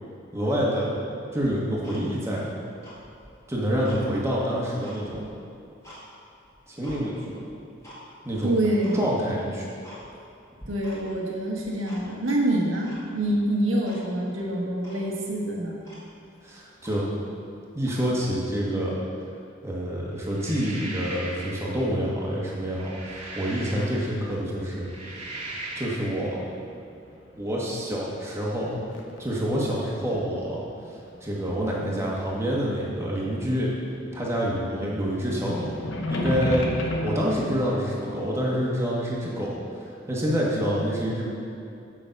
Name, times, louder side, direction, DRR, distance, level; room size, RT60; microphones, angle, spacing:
voice 1, 0.3-0.9 1.3-2.5 3.5-5.3 6.7-7.4 8.2-8.5 8.9-9.7 16.4-17.0 17.7-19.0 19.6-24.9 25.7-26.5 27.4-28.8 29.2-30.6 31.2-33.7 34.1-35.8 36.1-36.7 37.0-41.3, equal, 15° right, -5 dB, 1.5 m, -27 dB
Tick-tock, 1.4-2.4 2.7-4.1 4.5-6.0 6.4-7.0 7.5-8.0 8.3-8.4 8.8-9.0 9.4-9.5 9.8-10.3 10.6-11.2 11.5-12.3 12.8-13.4 13.8-14.0 14.4-14.5 14.8-15.1 15.5-15.6 15.8-17.3 17.8-18.0, equal, 15° left, 2.1 m, -47 dB
voice 2, 8.4-9.0 10.7-15.8 34.8-35.0, right 1 dB, 85° right, -2 dB, 1.6 m, -26 dB
sound 1, 20.2-21.7 22.5-24.2 24.7-26.1, right 2 dB, 30° right, 1.7 m, -38 dB
sound 2, 21.5-24.3 24.6-25.8 26.5-28.0 28.3-33.4 33.7-37.5, left 1 dB, 65° left, 0.9 m, -34 dB
7.3 x 7.0 x 5.3 m, 2.6 s
head